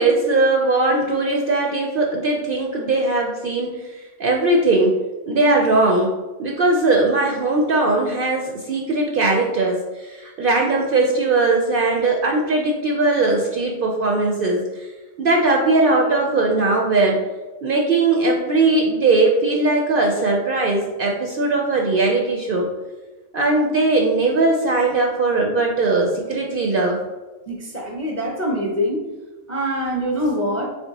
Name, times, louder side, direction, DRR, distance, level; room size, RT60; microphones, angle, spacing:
voice 1, 0.0-5.0 5.3-14.9 15.2-17.2 17.6-22.7 23.3-27.0, right 2 dB, 60° right, 0 dB, 0.6 m, -19 dB
voice 2, 27.5-29.1 29.5-30.7, equal, 15° left, -2 dB, 0.6 m, -24 dB
3.4 x 3.3 x 4.0 m, 1.2 s
omnidirectional pair, 1.3 m